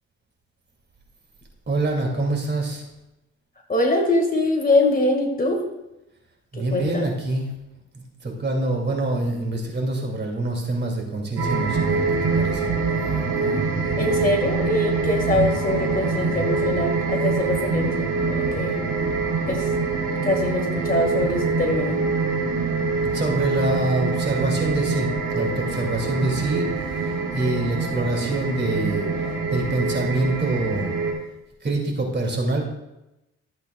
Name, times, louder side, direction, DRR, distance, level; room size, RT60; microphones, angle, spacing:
voice 1, 1.7-2.8 6.5-7.5 7.9-12.0 12.3-12.6 23.0-29.1 29.5-30.9 31.6-32.6, right 2 dB, 35° right, 0 dB, 2.8 m, -25 dB
voice 2, 3.7-5.6 6.5-7.1 14.0-18.8 19.5-22.1, left 2 dB, 30° left, 2 dB, 2.0 m, -23 dB
sound 1, 11.4-31.1, right 4 dB, 55° right, 3.6 m, -24 dB
14.0 x 8.1 x 2.4 m, 0.93 s
cardioid pair, 90°, 30 cm